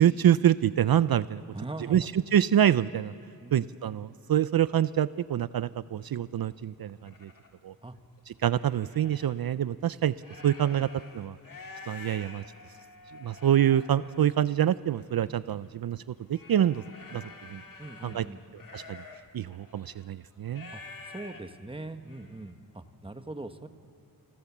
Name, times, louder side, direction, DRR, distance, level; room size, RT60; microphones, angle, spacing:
voice 1, 0.0-1.4 1.9-3.1 3.5-7.3 7.6-7.7 8.4-10.1 10.4-10.9 11.1-11.4 11.9-12.4 13.2-16.8 17.1-17.6 18.0-18.3 18.7-19.0 19.3-20.7, right 10 dB, 70° right, 15 dB, 0.5 m, -26 dB
voice 2, 1.5-2.1 3.4-3.7 7.8-8.0 10.7-10.9 17.8-18.4 20.7-20.8 21.1-23.7, right 2 dB, 15° right, 8 dB, 1.1 m, -41 dB
sound 1, 5.2-5.4 6.1-6.2 6.6-7.5 8.0-9.4 10.0-22.5, left 3 dB, 60° left, 2.3 m, -49 dB
29.0 x 18.5 x 7.2 m, 2.6 s
wide cardioid pair, 110°, 38 cm